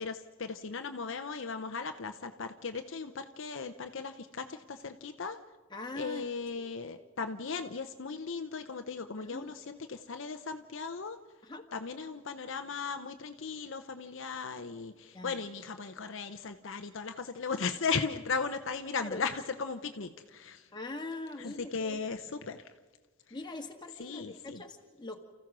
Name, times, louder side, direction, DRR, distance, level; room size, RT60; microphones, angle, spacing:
voice 1, 0.0-5.4 6.0-11.2 11.7-20.7 21.4-22.6 23.3-23.4 24.0-24.6, left 5 dB, 60° left, 7 dB, 0.7 m, -37 dB
voice 2, 5.7-6.2 6.6-6.7 9.2-9.5 11.4-11.7 15.1-15.4 19.0-19.2 20.7-22.0 23.3-25.2, left 2 dB, 20° left, 3 dB, 1.6 m, -42 dB
30.0 x 15.0 x 6.1 m, 1.4 s
head